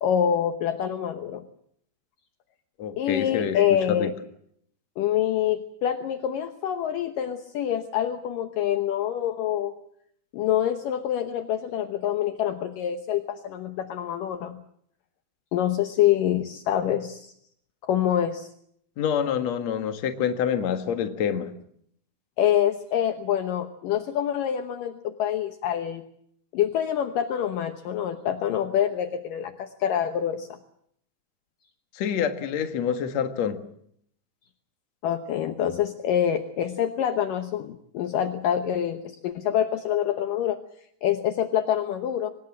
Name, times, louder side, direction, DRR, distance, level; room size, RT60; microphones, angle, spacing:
voice 1, 0.0-1.4 3.0-4.1 5.0-9.7 10.3-14.6 15.5-17.3 17.8-18.5 22.4-26.0 26.5-30.6 35.0-40.6 41.0-42.3, left 10 dB, 75° left, 8 dB, 2.0 m, -26 dB
voice 2, 2.8-4.1 19.0-21.5 31.9-33.6, left 8 dB, 55° left, 7 dB, 2.0 m, -27 dB
25.0 x 19.5 x 7.5 m, 0.69 s
omnidirectional pair, 5.5 m